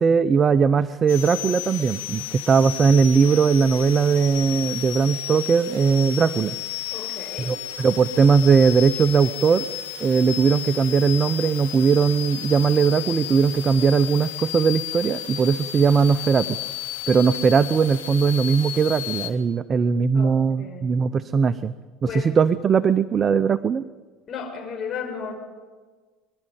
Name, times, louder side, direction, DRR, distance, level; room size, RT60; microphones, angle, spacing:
voice 1, 0.0-6.6 7.4-9.7 10.0-16.6 17.1-21.7 22.0-23.8, right 5 dB, 35° right, 15 dB, 0.6 m, -19 dB
sound 1, 1.1-19.3, left 13 dB, 85° left, 2.0 m, -33 dB
voice 2, 6.9-7.5 20.1-21.0 22.1-22.4 24.3-25.4, left 6 dB, 40° left, 2 dB, 5.4 m, -34 dB
23.5 x 12.0 x 9.2 m, 1.4 s
supercardioid pair, 95°, 0 cm